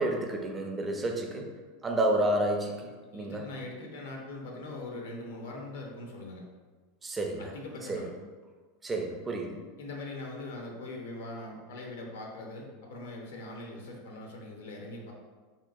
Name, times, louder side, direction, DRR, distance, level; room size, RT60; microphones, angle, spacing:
voice 1, 0.0-1.5 1.8-3.5 7.0-7.5 7.9-8.0 8.8-9.6, right 1 dB, 20° right, 2 dB, 0.4 m, -30 dB
voice 2, 3.1-6.4 7.4-8.1 9.8-15.1, left 2 dB, 80° left, 0 dB, 0.7 m, -41 dB
3.1 x 2.8 x 2.4 m, 1.4 s
hypercardioid pair, 105°, 0 cm